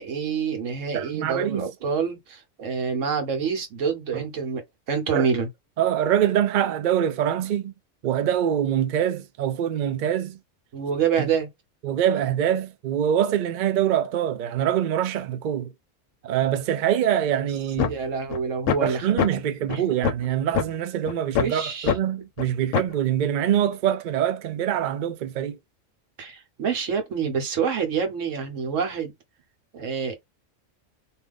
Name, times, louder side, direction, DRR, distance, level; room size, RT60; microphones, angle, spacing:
voice 1, 0.0-4.6 4.9-5.5 10.7-11.5 17.9-19.1 19.3-19.4 19.7-19.8 21.4-22.3 26.2-29.1 29.7-30.2, right 6 dB, 80° right, 1.3 m, -27 dB
voice 2, 0.9-1.7 4.1-4.2 5.1-5.3 5.8-7.7 8.0-10.4 11.8-15.7 16.2-17.9 18.8-25.6, right 10 dB, 65° right, 0.5 m, -24 dB
sound 1, 17.8-17.9 18.3-18.4 18.7-18.8 19.2-19.3 19.7-19.8 20.0-20.2 20.5-20.7 21.1-21.4 21.9-22.0 22.4-22.5 22.7-22.9, left 8 dB, 80° left, 0.9 m, -23 dB
2.7 x 2.4 x 3.3 m
omnidirectional pair, 1.3 m